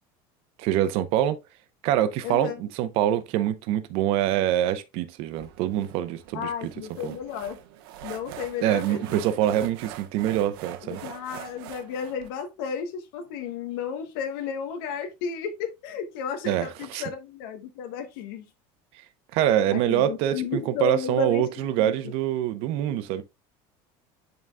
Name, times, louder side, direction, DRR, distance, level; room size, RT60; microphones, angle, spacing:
voice 1, 0.6-1.4 1.8-6.5 7.0-7.1 8.6-11.0 16.4-17.0 19.3-23.2, right 11 dB, 55° right, 0.8 m, -25 dB
voice 2, 2.2-2.6 6.3-7.6 8.0-9.2 10.8-18.5 19.6-21.9, left 7 dB, 80° left, 1.1 m, -33 dB
sound 1, 5.3-12.3, right 11 dB, 90° right, 1.0 m, -43 dB
11.0 x 4.0 x 2.2 m
cardioid pair, 170°, 12 cm